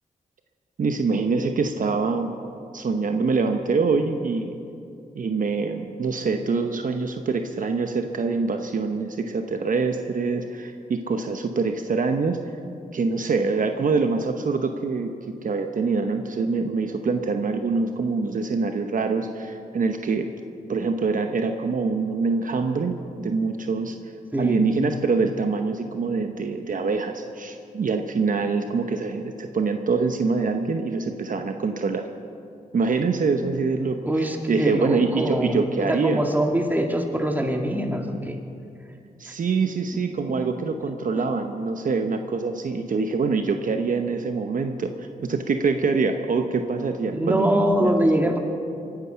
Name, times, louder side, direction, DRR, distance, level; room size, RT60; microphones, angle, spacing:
voice 1, 0.8-2.3 2.7-4.6 5.1-12.4 12.9-15.1 15.4-20.3 20.7-24.0 24.4-32.0 32.7-36.2 39.2-47.9, right 4 dB, 60° right, 6 dB, 0.9 m, -25 dB
voice 2, 34.1-35.6 35.9-38.4 47.1-48.4, right 1 dB, 10° right, 3 dB, 2.0 m, -23 dB
23.5 x 9.7 x 5.7 m, 2.6 s
cardioid pair, 65°, 16 cm